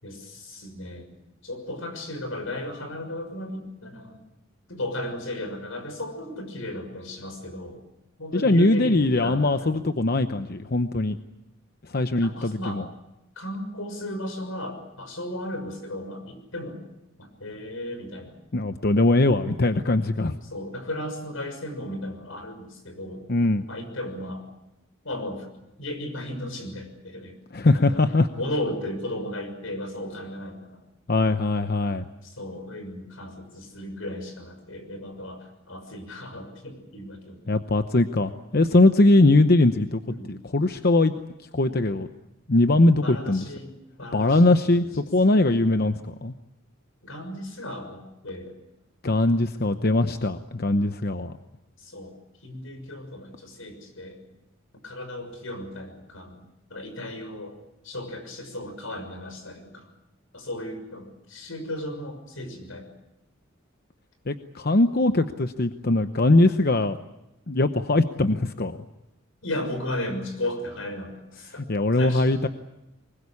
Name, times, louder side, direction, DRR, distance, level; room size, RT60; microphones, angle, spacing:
voice 1, 0.0-1.1 1.4-4.2 4.7-7.8 8.2-9.8 12.2-12.8 13.4-16.8 17.2-18.4 20.4-23.3 23.7-24.5 25.0-25.5 25.8-27.4 27.6-28.0 28.3-30.8 32.2-37.4 40.1-40.3 43.0-43.7 44.0-45.1 47.0-48.5 51.8-52.1 52.4-54.2 54.8-57.5 57.8-59.9 60.3-62.9 69.4-71.6 72.0-72.5, left 1 dB, 85° left, 6 dB, 6.4 m, -35 dB
voice 2, 8.3-11.2 11.9-12.8 18.5-20.4 23.3-23.7 27.5-28.3 31.1-32.0 37.5-40.0 40.3-41.1 41.5-42.1 42.5-43.4 44.1-46.3 49.0-51.3 64.3-67.0 67.5-68.7 71.7-72.5, left 2 dB, 50° left, 9 dB, 0.9 m, -21 dB
24.5 x 21.5 x 8.5 m, 0.93 s
head